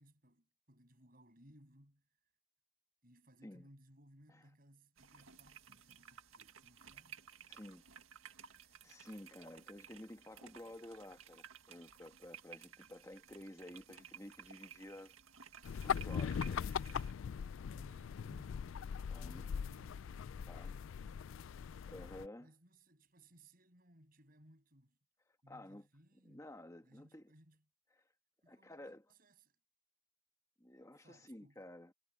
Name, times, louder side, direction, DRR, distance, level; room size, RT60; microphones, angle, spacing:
voice 1, 0.0-2.1 3.0-7.2 17.7-18.7 19.1-21.5 22.4-25.0 25.4-26.4 26.8-27.6 28.4-29.6 31.0-31.6, right 1 dB, 45° right, 7.2 m, -64 dB
sound 1, 5.0-17.1, right 8 dB, 75° right, 1.8 m, -57 dB
voice 2, 7.5-7.8 8.8-15.1 15.8-16.7 19.1-19.5 20.5-20.7 21.9-22.5 25.5-25.9 26.2-27.3 28.5-29.0 30.6-31.9, left 1 dB, 15° left, 1.4 m, -52 dB
sound 2, 15.6-22.3, left 7 dB, 70° left, 0.3 m, -40 dB
head